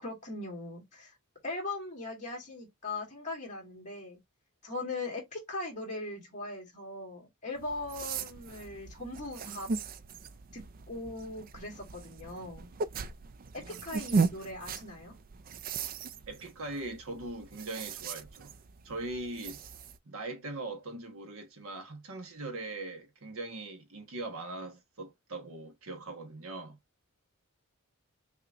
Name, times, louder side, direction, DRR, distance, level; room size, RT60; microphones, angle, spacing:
voice 1, 0.0-1.1 1.4-4.2 4.6-9.7 10.5-12.7 13.5-15.1, left 2 dB, 35° left, 2.1 m, -40 dB
sound 1, 7.6-20.0, right 4 dB, 40° right, 0.4 m, -37 dB
voice 2, 16.3-18.5 18.8-19.6 20.0-26.8, right 2 dB, 65° right, 1.3 m, -41 dB
5.9 x 2.8 x 2.5 m
head